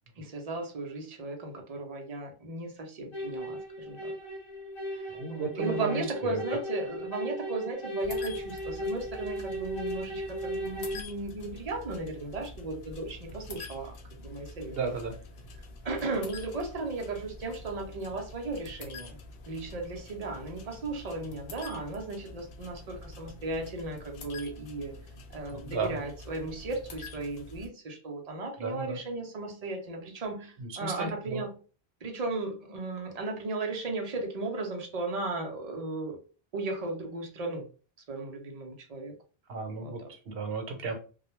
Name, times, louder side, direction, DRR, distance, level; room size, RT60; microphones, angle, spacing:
voice 1, 0.2-4.1 4.9-14.8 15.8-19.2 19.5-25.0 25.3-31.5 32.0-36.2 36.5-37.7 38.1-39.2 39.8-40.1, right 3 dB, 45° right, 0.6 m, -36 dB
sound 1, 3.1-11.0, equal, 30° left, 0.6 m, -37 dB
voice 2, 5.1-6.4 14.7-15.1 25.5-26.0 28.6-29.0 30.6-31.4 39.5-40.9, right 4 dB, 65° right, 0.9 m, -34 dB
sound 2, 8.0-27.7, left 3 dB, 70° left, 0.8 m, -46 dB
2.3 x 2.1 x 3.0 m
omnidirectional pair, 1.1 m